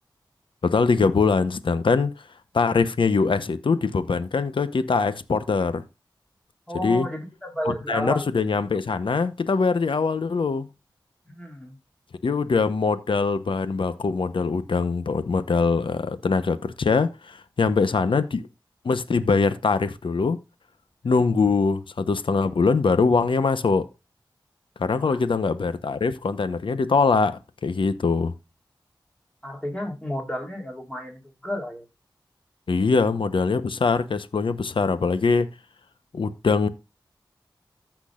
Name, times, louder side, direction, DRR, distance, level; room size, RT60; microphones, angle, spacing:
voice 1, 0.6-2.1 2.5-5.8 6.8-7.1 7.7-10.7 12.2-18.4 18.8-20.4 21.0-23.9 24.8-28.3 32.7-35.5 36.1-36.7, left 4 dB, 80° left, 0.9 m, -22 dB
voice 2, 6.7-8.3 11.3-11.8 21.2-21.4 24.9-25.2 29.4-31.9, equal, 10° left, 3.9 m, -32 dB
14.5 x 6.1 x 2.4 m
cardioid pair, 40°, 9 cm